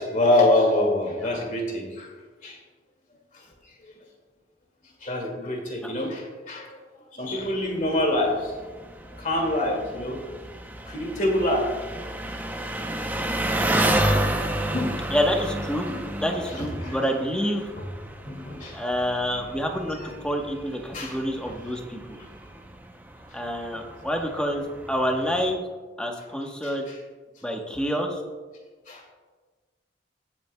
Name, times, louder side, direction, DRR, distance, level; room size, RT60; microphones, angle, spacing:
voice 1, 0.0-2.1 2.4-2.6 3.3-3.4 3.8-3.9 5.0-6.8 7.1-8.5 9.1-10.2 10.9-11.7 13.6-15.1 15.9-16.0 16.3-17.0 17.8-17.9 18.3-18.9 20.9-21.2 21.5-21.6 26.6-27.0 28.9-29.0, left 1 dB, 45° left, 1 dB, 2.2 m, -26 dB
Engine, 7.4-25.5, right 1 dB, 10° right, 0.7 m, -31 dB
voice 2, 15.1-15.9 16.2-17.7 18.7-20.0 20.2-22.2 23.3-25.6 26.0-26.9 27.4-28.2, equal, 5° left, 2 dB, 1.1 m, -27 dB
18.0 x 8.6 x 2.3 m, 1.4 s
head